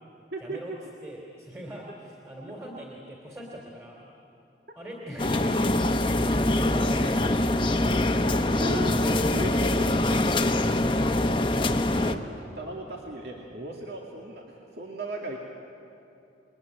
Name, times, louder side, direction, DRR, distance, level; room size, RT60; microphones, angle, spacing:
voice 1, 0.4-0.7 1.0-4.1 4.8-7.4 8.8-11.4, equal, 15° right, -2 dB, 3.0 m, -42 dB
sound 1, 5.2-12.2, left 1 dB, 30° left, 1.0 m, -24 dB
voice 2, 8.6-8.9 9.3-9.9 12.0-12.2 12.5-15.4, right 1 dB, 65° right, -1 dB, 2.3 m, -36 dB
29.0 x 21.5 x 9.4 m, 2.8 s
head